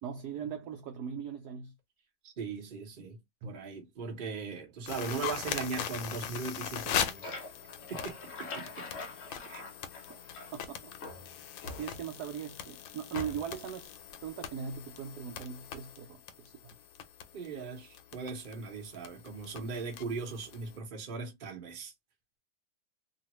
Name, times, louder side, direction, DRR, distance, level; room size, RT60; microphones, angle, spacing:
voice 1, 0.0-1.7 3.4-3.6 5.2-5.3 10.5-10.9 11.7-13.9 14.2-16.7, right 7 dB, 75° right, 0.9 m, -40 dB
voice 2, 2.2-7.3 7.9-8.9 9.5-9.6 17.3-21.9, right 4 dB, 40° right, 0.7 m, -39 dB
sound 1, 4.9-20.8, left 9 dB, 75° left, 1.3 m, -41 dB
sound 2, 7.2-10.7 11.0-12.3 13.1-13.7, left 2 dB, 55° left, 0.9 m, -44 dB
3.1 x 2.5 x 2.9 m
omnidirectional pair, 2.3 m